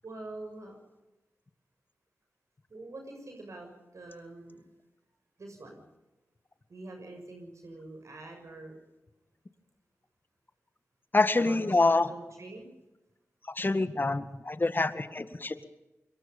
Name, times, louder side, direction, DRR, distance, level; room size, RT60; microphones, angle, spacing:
voice 1, 0.0-0.8 2.7-4.7 5.4-5.8 6.7-8.8 11.3-11.6 11.9-12.7, right 2 dB, 65° right, 3 dB, 6.8 m, -45 dB
voice 2, 11.1-12.1 13.5-15.6, left 2 dB, 35° left, 11 dB, 1.9 m, -26 dB
26.5 x 22.0 x 5.5 m, 1.0 s
cardioid pair, 45°, 6 cm